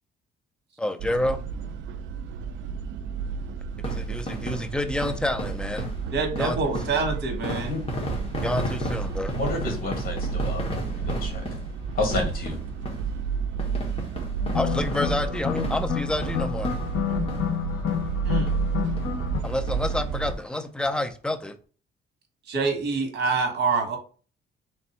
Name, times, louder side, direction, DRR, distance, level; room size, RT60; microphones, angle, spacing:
voice 1, 0.8-1.4 3.8-5.9 6.4-6.8 8.4-9.3 14.5-16.7 19.4-21.5, left 1 dB, 5° left, 7 dB, 0.5 m, -28 dB
sound 1, 1.0-20.3, right 6 dB, 80° right, 0.4 m, -31 dB
sound 2, 3.7-17.6 17.9-18.0 18.5-18.6 19.0-19.1 19.4-20.4 20.8-20.9 21.1-21.2, equal, 30° left, 1.3 m, -35 dB
voice 2, 6.1-7.7 18.2-18.5 22.5-24.0, right 4 dB, 60° right, 4 dB, 1.4 m, -26 dB
voice 3, 9.3-11.4 11.9-12.6, left 2 dB, 50° left, 3 dB, 1.6 m, -30 dB
sound 3, 14.4-19.4, left 9 dB, 85° left, 0.7 m, -29 dB
3.4 x 2.6 x 4.2 m, 0.38 s
cardioid pair, 120°, 19 cm